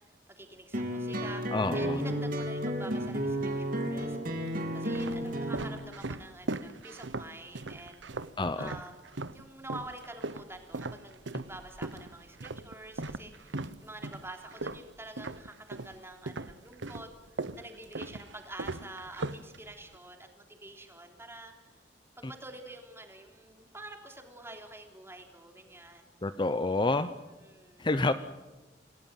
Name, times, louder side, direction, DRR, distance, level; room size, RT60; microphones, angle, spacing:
voice 1, 0.3-4.2 4.7-8.1 8.6-9.0 9.3-17.1 17.6-21.5 22.2-26.1 27.4-27.9, right 2 dB, 15° right, 4 dB, 3.4 m, -47 dB
sound 1, 0.7-5.8, equal, 50° right, 3.0 m, -32 dB
voice 2, 1.5-2.0 8.4-8.7 22.2-22.3 26.2-27.1 27.8-28.1, left 2 dB, 25° left, 11 dB, 0.7 m, -28 dB
sound 2, 2.9-3.6 4.3-9.4 9.7-16.0 16.3-20.0, right 3 dB, 80° right, 1.0 m, -39 dB
27.5 x 17.5 x 9.0 m, 1.1 s
head